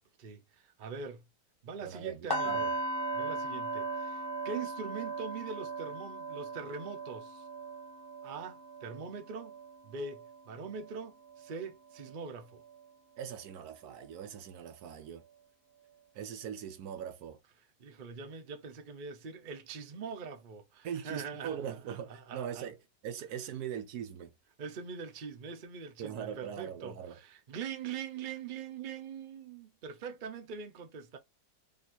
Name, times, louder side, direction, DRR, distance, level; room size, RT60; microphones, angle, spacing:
voice 1, 0.2-1.2 1.6-2.7 3.1-7.5 8.2-9.6 9.8-12.6 17.8-22.7 24.6-31.2, right 5 dB, 45° right, 0.6 m, -43 dB
voice 2, 1.8-2.7 13.2-15.2 16.1-17.4 20.8-22.8 23.0-24.3 26.0-27.2, right 8 dB, 70° right, 1.1 m, -41 dB
sound 1, 2.3-12.2 12.6-12.8 13.3-13.4, right 2 dB, 20° left, 0.6 m, -38 dB
3.1 x 2.8 x 4.3 m
omnidirectional pair, 1.8 m